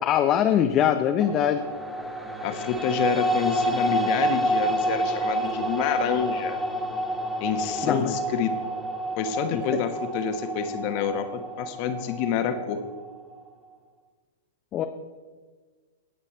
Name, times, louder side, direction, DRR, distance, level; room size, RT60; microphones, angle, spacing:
voice 1, 0.0-1.6 7.8-8.1 9.5-9.6 14.7-14.9, left 10 dB, 30° left, 6 dB, 0.7 m, -22 dB
sound 1, 1.2-13.4, right 1 dB, 5° right, 1.5 m, -29 dB
voice 2, 2.4-6.6 7.4-8.5 9.2-12.8, left 8 dB, 45° left, 7 dB, 1.3 m, -28 dB
19.0 x 7.0 x 4.5 m, 1.5 s
hypercardioid pair, 110°, 0 cm